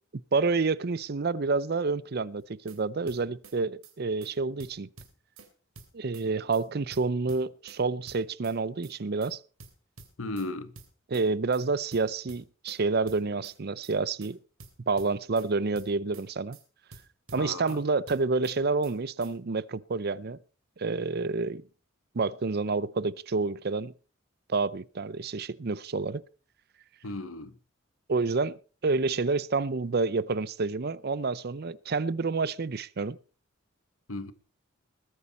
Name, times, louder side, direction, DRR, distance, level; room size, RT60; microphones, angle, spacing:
voice 1, 0.3-4.9 5.9-9.4 11.1-14.4 14.9-16.6 17.3-20.4 20.8-21.6 22.1-23.9 24.5-26.2 28.1-33.2, right 4 dB, 50° right, 0.6 m, -29 dB
sound 1, 2.4-2.8 3.1-3.6 3.8-3.9 4.2-4.3 4.6-5.5 5.7-6.3 6.5-6.6 6.9-7.8 8.1-8.6 8.8-8.9 9.2-9.3 9.6-10.5 10.8-11.3 11.5-11.6 11.9-12.8 13.1-13.6 13.8-13.9 14.2-14.3 14.6-15.5 15.8-16.3 16.5-16.6 16.9-17.8 18.1-18.6 18.8-18.9 19.2-19.3, right 3 dB, 80° right, 3.1 m, -50 dB
voice 2, 10.2-10.7 17.3-17.8 27.0-27.6 34.1-34.3, left 2 dB, 75° left, 1.3 m, -36 dB
20.5 x 9.6 x 4.2 m
head